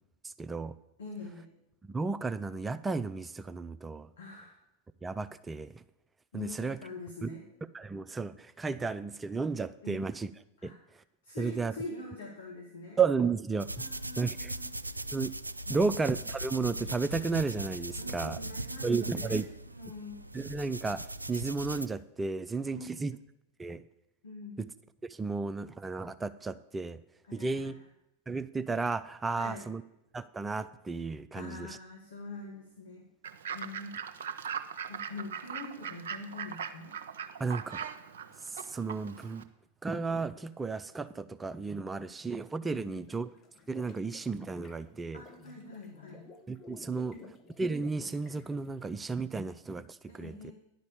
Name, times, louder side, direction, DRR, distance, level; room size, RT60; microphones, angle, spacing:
voice 1, 0.4-0.7 1.9-4.1 5.0-5.8 6.3-6.8 7.2-7.3 7.7-10.3 10.6-10.7 11.4-11.7 13.0-13.7 14.2-14.5 15.1-15.3 15.7-18.4 18.8-19.4 20.3-23.1 23.6-23.8 24.6-24.7 25.1-27.0 27.3-27.7 28.3-29.8 30.1-31.7 37.4-37.8 38.5-39.4 39.8-43.3 43.7-45.2 46.5-47.1 47.6-50.5, right 4 dB, 15° right, 13 dB, 0.4 m, -33 dB
voice 2, 1.0-1.5 4.2-4.6 6.3-7.5 9.8-10.0 10.6-10.8 11.2-13.0 13.7-14.7 15.6-16.1 18.0-20.2 22.6-23.1 24.2-24.6 27.2-27.7 29.3-29.7 31.3-33.1 33.5-33.9 34.9-37.0 42.7-43.1 45.1-46.3 46.9-47.3 50.1-50.5, left 2 dB, 70° left, 0 dB, 1.9 m, -44 dB
sound 1, 13.6-21.9, right 1 dB, 90° right, 0.4 m, -39 dB
Fowl / Bird, 33.2-39.4, right 7 dB, 65° right, 0.8 m, -40 dB
sound 2, 43.0-49.7, left 4 dB, 25° left, 1.1 m, -54 dB
10.5 x 5.2 x 8.5 m, 0.87 s
figure-of-eight pair, 90°, 0 cm